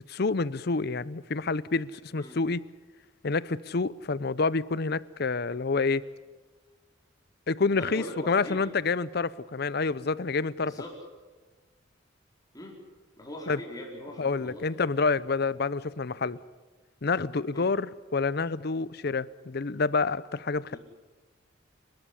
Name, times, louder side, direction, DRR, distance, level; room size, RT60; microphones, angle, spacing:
voice 1, 0.1-2.6 3.2-6.0 7.5-10.7 13.5-13.6 14.2-16.4 17.0-20.8, left 4 dB, 55° left, 0.7 m, -28 dB
voice 2, 7.7-8.7 10.6-10.9 12.5-12.8 13.2-14.6 17.5-17.7 20.7-20.8, equal, 20° left, 4.7 m, -41 dB
28.0 x 13.0 x 10.0 m
head